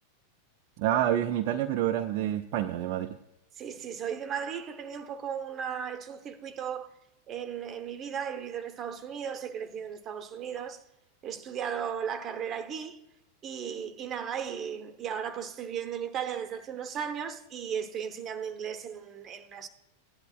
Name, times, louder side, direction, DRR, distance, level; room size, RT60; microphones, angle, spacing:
voice 1, 0.8-3.1, right 11 dB, 45° right, 0.5 m, -28 dB
voice 2, 3.5-6.9 7.3-10.8 11.2-13.0 13.4-19.7, right 8 dB, 25° right, 1.0 m, -36 dB
16.5 x 10.5 x 2.4 m
figure-of-eight pair, 90°, 0 cm